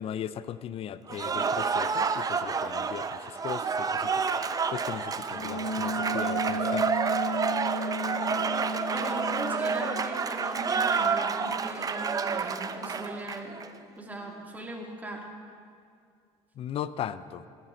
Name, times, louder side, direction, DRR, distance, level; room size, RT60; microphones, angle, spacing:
voice 1, 0.0-6.9 16.6-17.5, left 10 dB, 45° left, 15 dB, 0.5 m, -38 dB
Cheering / Applause, 1.1-13.7, right 5 dB, 30° right, 0.7 m, -29 dB
Wind instrument woodwind instrument, 5.3-10.1, left 1 dB, 80° left, 3.1 m, -34 dB
voice 2, 8.9-13.6 14.0-15.3, right 1 dB, 10° right, 0 dB, 2.3 m, -39 dB
17.0 x 12.5 x 3.9 m, 2.2 s
supercardioid pair, 90°, 13 cm